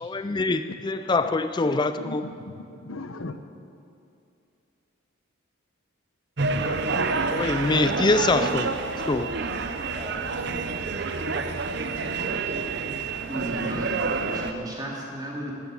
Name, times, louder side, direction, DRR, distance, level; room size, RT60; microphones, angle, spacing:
voice 1, 0.0-2.2 7.3-8.7 9.1-9.3, left 3 dB, 20° left, 0.3 m, -24 dB
voice 2, 1.5-3.4, left 2 dB, 75° left, 0.8 m, -39 dB
sound 1, 6.4-14.5, right 4 dB, 50° right, 0.7 m, -28 dB
voice 3, 13.3-15.5, right 1 dB, 20° right, 2.5 m, -34 dB
12.0 x 10.5 x 8.4 m
head